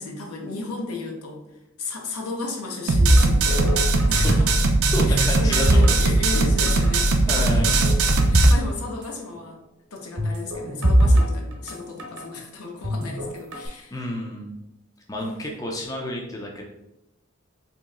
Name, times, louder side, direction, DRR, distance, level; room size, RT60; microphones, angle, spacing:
voice 1, 0.0-1.5 1.8-4.6 5.1-7.8 8.2-9.6 9.9-14.0 15.2-15.6, left 3 dB, 85° left, 1 dB, 0.8 m, -34 dB
sound 1, 2.9-8.5, right 2 dB, 75° right, 0.5 m, -20 dB
sound 2, 3.0-4.6 4.8-6.4 6.7-6.9 7.5-8.6 8.9-9.0 10.2-12.2 12.8-13.7, equal, 55° right, 0.9 m, -21 dB
voice 2, 4.9-5.9 7.3-7.7 13.9-14.6 15.1-16.6, left 1 dB, 15° left, -1 dB, 0.5 m, -30 dB
3.1 x 2.9 x 3.6 m, 0.87 s
head